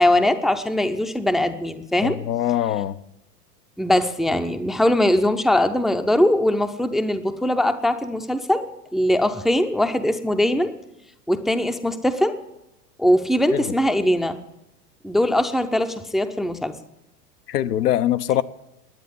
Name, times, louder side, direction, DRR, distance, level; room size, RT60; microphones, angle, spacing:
voice 1, 0.0-2.2 3.8-10.7 11.3-12.4 13.0-14.4 15.0-16.8, left 1 dB, ahead, 0.5 m, -21 dB
voice 2, 2.0-3.0 13.5-13.6 17.5-18.4, left 12 dB, 80° left, 0.8 m, -22 dB
10.5 x 9.3 x 9.5 m
hypercardioid pair, 100°, 47 cm